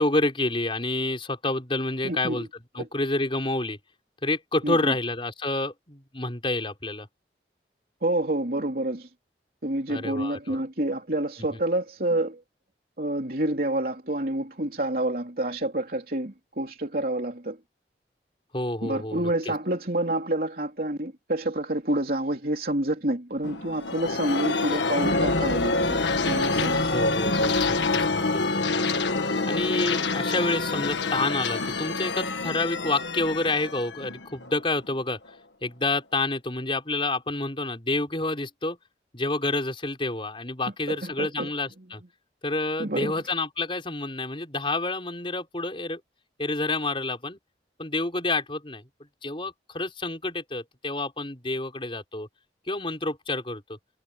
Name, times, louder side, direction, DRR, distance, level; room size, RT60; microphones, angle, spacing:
voice 1, 0.0-3.8 4.2-7.1 9.9-10.6 18.5-19.5 26.9-28.8 29.4-35.2 35.6-38.8 39.1-42.0 42.4-46.0 46.4-47.4 47.8-48.8 49.2-52.3 52.7-53.8, left 2 dB, 30° left, 4.5 m, -29 dB
voice 2, 2.0-2.4 2.8-2.9 4.6-4.9 8.0-9.1 9.6-12.4 13.0-17.6 18.8-26.9 40.9-41.5 42.8-43.2, right 1 dB, 55° right, 3.4 m, -28 dB
sound 1, 23.4-34.9, left 3 dB, 90° left, 1.6 m, -26 dB
head